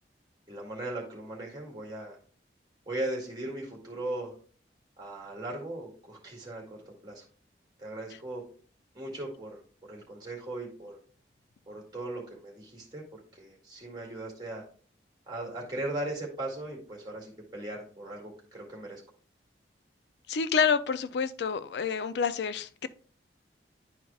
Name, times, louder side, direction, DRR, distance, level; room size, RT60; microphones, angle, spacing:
voice 1, 0.5-2.2 2.9-4.3 5.0-7.2 7.8-8.4 8.9-9.6 9.9-11.0 11.7-14.6 15.3-19.0, right 1 dB, 25° right, -1 dB, 2.2 m, -38 dB
voice 2, 20.3-22.9, left 6 dB, 70° left, 14 dB, 0.4 m, -28 dB
11.0 x 4.6 x 2.3 m, 0.41 s
head